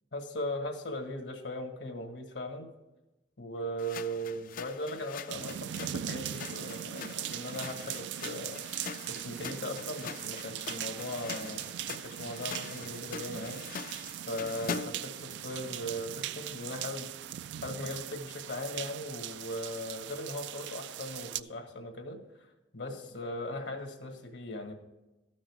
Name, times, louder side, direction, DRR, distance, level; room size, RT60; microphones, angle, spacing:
voice 1, 0.1-2.7 3.4-8.6 9.1-13.6 14.3-17.1 17.6-24.7, left 1 dB, 75° left, 5 dB, 1.6 m, -39 dB
sound 1, 3.8-15.1, left 6 dB, 50° left, 0.4 m, -43 dB
sound 2, 5.3-21.4, right 11 dB, 75° right, 0.3 m, -40 dB
13.0 x 6.3 x 4.7 m, 1.0 s
head